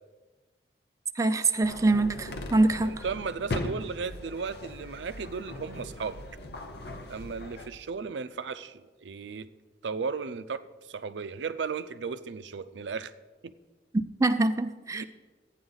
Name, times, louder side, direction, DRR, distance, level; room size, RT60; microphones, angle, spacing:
voice 1, 1.2-3.0 14.2-15.1, right 2 dB, 20° right, 8 dB, 0.3 m, -24 dB
sound 1, 1.6-7.7, left 1 dB, 65° left, 0.8 m, -39 dB
voice 2, 2.8-6.2 7.1-9.5 9.8-10.6 10.9-13.1 13.4-13.5 14.9-15.1, right 5 dB, 85° right, 13 dB, 0.5 m, -35 dB
12.5 x 8.9 x 3.9 m, 1.2 s
head